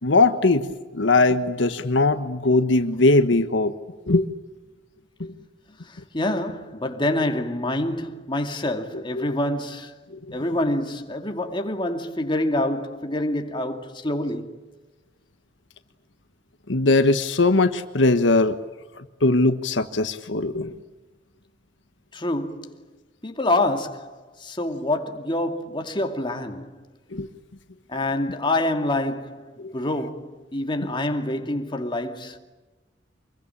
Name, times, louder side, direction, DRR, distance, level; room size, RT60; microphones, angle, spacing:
voice 1, 0.0-3.7 4.1-4.3 5.2-5.3 9.2-9.3 10.1-10.3 16.7-18.6 19.0-20.7 27.1-27.3 29.6-29.7 30.8-30.9, left 2 dB, 80° left, 1.3 m, -20 dB
voice 2, 5.8-10.0 10.3-14.5 22.1-22.9 23.2-26.8 27.9-32.4, left 1 dB, 25° left, 2.4 m, -27 dB
26.0 x 22.5 x 8.7 m
head